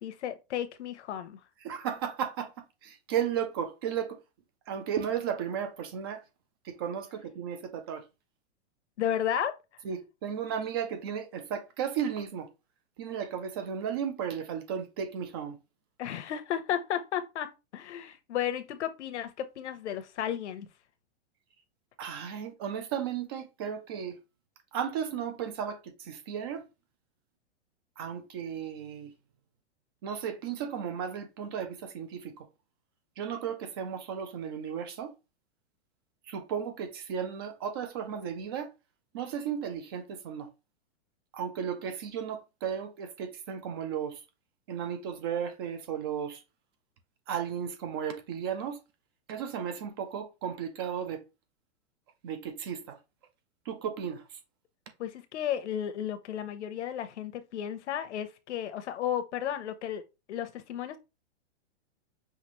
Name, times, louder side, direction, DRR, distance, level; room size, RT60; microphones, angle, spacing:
voice 1, 0.0-1.4 9.0-9.5 16.0-20.7 55.0-60.0 60.3-61.0, left 10 dB, 80° left, 0.9 m, -33 dB
voice 2, 1.6-2.5 2.8-4.2 4.7-6.2 6.6-8.0 9.8-12.5 13.0-15.6 22.0-24.2 24.7-26.7 28.0-29.1 30.0-32.5 33.2-35.1 36.3-38.7 39.1-40.5 41.3-44.2 44.7-46.4 47.3-48.8 49.3-51.2 52.2-53.0 53.7-54.4, right 8 dB, 25° right, 0.3 m, -34 dB
5.6 x 2.6 x 3.1 m
supercardioid pair, 160°, 34 cm